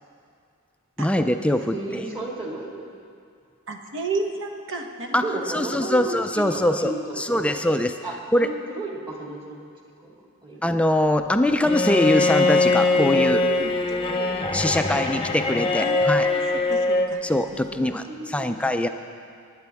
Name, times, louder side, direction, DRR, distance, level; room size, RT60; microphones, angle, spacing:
voice 1, 1.0-2.1 5.1-5.2 5.5-8.0 8.3-8.5 10.6-13.5 14.5-16.3 17.2-18.9, left 1 dB, 5° left, 7 dB, 0.4 m, -23 dB
voice 2, 1.7-2.8 5.2-7.7 8.0-9.7 10.0-10.1 10.4-10.6 13.9-15.1 17.7-18.6, right 2 dB, 25° right, -2 dB, 2.0 m, -34 dB
voice 3, 3.7-5.3 12.9-13.7 15.8-16.4 16.7-17.2, right 3 dB, 60° right, 4 dB, 1.1 m, -31 dB
Bowed string instrument, 11.6-17.2, left 3 dB, 25° left, 0.8 m, -22 dB
20.0 x 9.7 x 3.5 m, 2.3 s
head